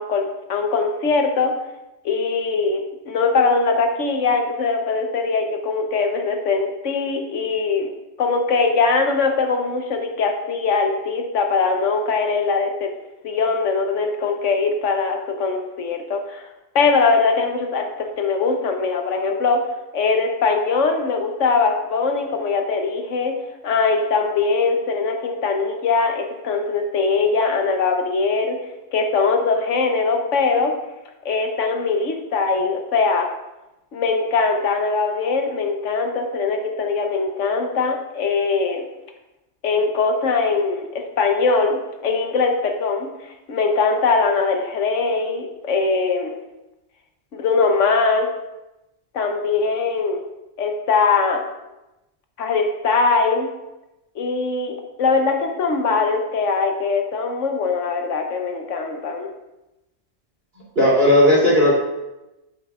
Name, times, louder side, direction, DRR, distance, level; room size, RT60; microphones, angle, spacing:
voice 1, 0.0-1.5 2.0-7.9 8.2-12.9 13.2-16.5 16.7-19.6 19.9-23.3 23.6-28.6 28.9-30.7 31.2-33.3 33.9-38.8 39.6-40.9 41.2-43.1 43.5-46.3 47.3-48.3 49.1-50.2 50.6-51.4 52.4-53.5 54.2-59.3, left 4 dB, 80° left, 4 dB, 1.2 m, -21 dB
voice 2, 60.7-61.7, left 1 dB, 50° right, -6 dB, 3.2 m, -14 dB
8.9 x 7.6 x 2.4 m, 0.98 s
omnidirectional pair, 1.3 m